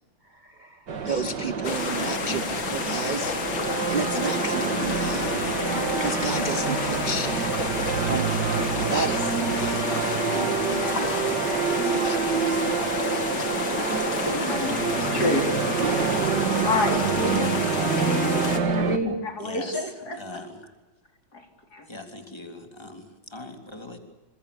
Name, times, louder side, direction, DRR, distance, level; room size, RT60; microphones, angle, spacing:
voice 1, 0.3-3.4 3.9-5.4 5.6-7.5 7.8-9.8 10.3-11.1 11.8-12.9, right 3 dB, 40° right, 12 dB, 0.6 m, -32 dB
sound 1, 0.9-19.0, right 5 dB, 60° right, 2.5 m, -27 dB
sound 2, 1.6-18.6, left 4 dB, 75° left, 3.3 m, -30 dB
voice 2, 13.7-15.8 16.2-17.6 17.9-20.2 21.3-21.5 21.7-21.9, left 2 dB, 50° left, 3 dB, 4.6 m, -29 dB
voice 3, 17.8-18.3 19.4-20.7 21.9-24.0, left 2 dB, 15° left, 4 dB, 3.5 m, -40 dB
28.5 x 26.0 x 7.1 m, 1.1 s
omnidirectional pair, 2.1 m